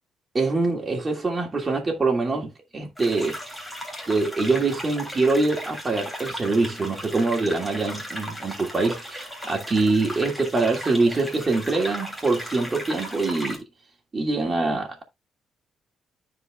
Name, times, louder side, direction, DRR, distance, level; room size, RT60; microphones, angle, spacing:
voice 1, 0.3-3.4 4.1-13.6 14.1-15.0, right 3 dB, 30° right, 2.7 m, -24 dB
sound 1, 3.0-13.6, equal, 5° left, 3.0 m, -36 dB
13.5 x 4.9 x 2.4 m
cardioid pair, 90°, 0 cm